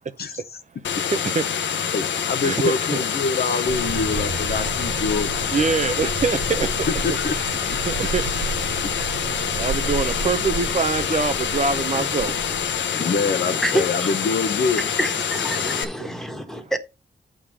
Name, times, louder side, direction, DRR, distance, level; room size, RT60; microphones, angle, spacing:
sound 1, 0.8-15.8, left 8 dB, 80° left, 0.9 m, -26 dB
voice 1, 1.1-1.4 2.4-3.0 5.5-6.7 7.8-8.2 9.5-12.3 15.8-16.1 16.6-16.7, right 4 dB, 40° right, 0.7 m, -24 dB
voice 2, 1.9-5.4 7.0-7.3 7.7-7.8 13.0-14.8, left 4 dB, 60° left, 0.9 m, -25 dB
sound 2, 3.7-12.8, right 3 dB, 85° right, 1.3 m, -32 dB
voice 3, 12.7-14.3 14.8-16.8, right 1 dB, ahead, 1.5 m, -28 dB
8.4 x 3.8 x 6.2 m
cardioid pair, 75°, 19 cm